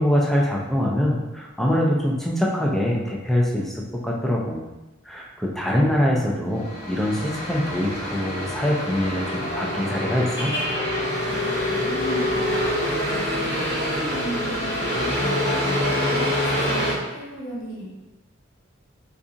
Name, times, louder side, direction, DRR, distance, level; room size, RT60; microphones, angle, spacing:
voice 1, 0.0-4.6 5.1-10.5, equal, ahead, -3 dB, 0.4 m, -24 dB
sound 1, 6.6-16.9, left 1 dB, 55° left, 1.1 m, -25 dB
voice 2, 11.2-17.9, right 1 dB, 75° left, -6 dB, 1.1 m, -36 dB
3.9 x 2.4 x 2.6 m, 1.0 s
head